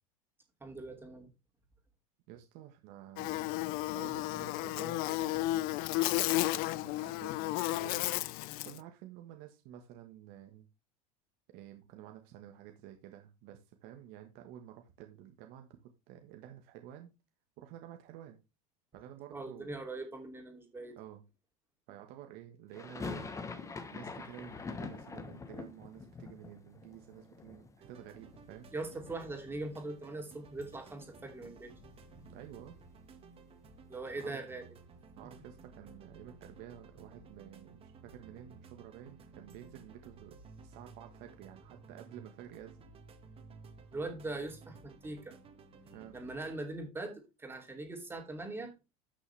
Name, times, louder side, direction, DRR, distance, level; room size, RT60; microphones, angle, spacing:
voice 1, 0.6-1.3 19.3-21.0 28.7-31.7 33.9-34.7 43.9-45.3 46.1-48.7, right 2 dB, 10° right, 3 dB, 2.8 m, -41 dB
voice 2, 2.3-8.1 8.6-10.7 11.5-15.7 16.1-17.1 17.6-18.4 18.9-19.7 21.0-21.2 21.9-23.4 23.9-28.7 32.1-32.8 34.1-34.3 35.2-40.4 40.6-42.8 45.9-46.2, right 11 dB, 60° right, 5 dB, 1.5 m, -51 dB
Buzz, 3.2-8.8, left 17 dB, 55° left, 0.5 m, -33 dB
sound 1, 22.7-28.7 28.9-29.8 30.1-30.2 30.4-32.6, left 4 dB, 15° left, 1.2 m, -45 dB
sound 2, 27.8-46.6, right 4 dB, 30° right, 2.1 m, -56 dB
11.5 x 6.2 x 3.4 m, 0.26 s
supercardioid pair, 125°, 18 cm